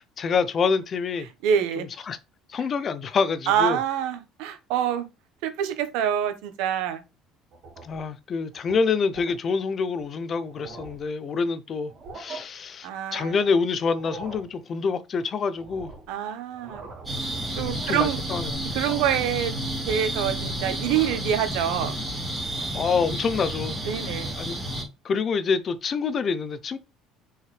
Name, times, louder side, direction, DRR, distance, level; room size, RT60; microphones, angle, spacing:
voice 1, 0.2-1.3 2.1-2.2 2.5-3.8 7.8-15.9 17.9-18.6 22.7-23.8 24.4-24.6 25.0-26.8, left 5 dB, 35° left, 0.6 m, -26 dB
voice 2, 1.4-1.9 3.5-5.1 5.4-7.0 12.8-13.3 16.1-16.8 17.6-18.2 18.7-19.5 19.9-22.0 23.8-24.3, right 9 dB, 85° right, 1.1 m, -26 dB
sound 1, 7.5-8.1 8.5-8.8 9.1-9.4 10.0-10.1 10.4-11.1 11.9-12.4 13.8-14.5 15.6-16.1 16.5-17.2 17.6-18.2 18.8-19.3 19.6-20.3 20.7-21.4, right 3 dB, 45° right, 3.5 m, -43 dB
sound 2, 17.0-24.8, right 1 dB, 10° right, 3.0 m, -31 dB
6.3 x 4.7 x 3.3 m
cardioid pair, 150°, 0 cm